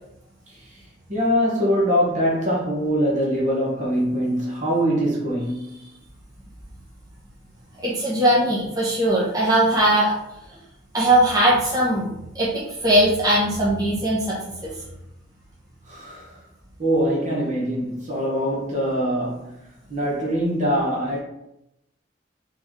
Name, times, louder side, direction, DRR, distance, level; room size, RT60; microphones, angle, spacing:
voice 1, 1.1-5.8 15.9-16.4 16.8-19.6 19.9-21.2, equal, 40° right, 1.2 m, -23 dB
voice 2, 7.8-10.1 10.5-10.6 10.9-14.7, right 1 dB, 20° right, 1.1 m, -20 dB
3.9 x 3.3 x 3.7 m
head